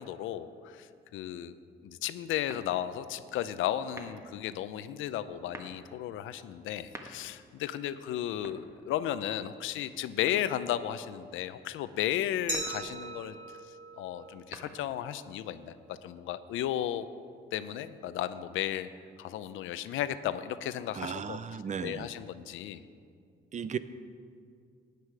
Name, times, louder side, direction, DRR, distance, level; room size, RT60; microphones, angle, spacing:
voice 1, 0.0-1.5 1.8-13.4 14.0-17.1 17.5-18.9 19.2-21.4 21.8-22.9, left 11 dB, 85° left, 13 dB, 0.6 m, -34 dB
sound 1, 2.5-3.1 3.8-4.4 5.3-5.8 6.7-7.5 8.3-9.2 10.3-10.9 12.3-12.9 14.2-15.1, right 1 dB, 15° right, 1.3 m, -48 dB
Glass, 12.5-15.2, right 2 dB, 70° right, 1.9 m, -40 dB
voice 2, 21.0-22.1 23.5-23.8, right 7 dB, 40° right, 13 dB, 0.6 m, -35 dB
13.5 x 9.4 x 4.8 m, 2.3 s
cardioid pair, 90°, 20 cm